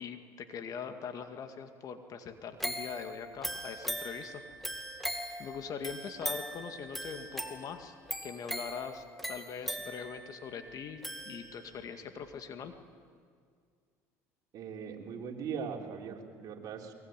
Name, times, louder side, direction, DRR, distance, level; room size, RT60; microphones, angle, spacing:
voice 1, 0.0-4.4 5.1-8.0 8.2-12.7, left 6 dB, 50° left, 7 dB, 2.2 m, -42 dB
sound 1, 2.6-11.9 12.3-12.4, equal, ahead, 2.4 m, -40 dB
voice 2, 14.5-16.9, right 6 dB, 55° right, 1 dB, 3.7 m, -40 dB
23.0 x 22.0 x 9.2 m, 2.1 s
supercardioid pair, 90°, 8 cm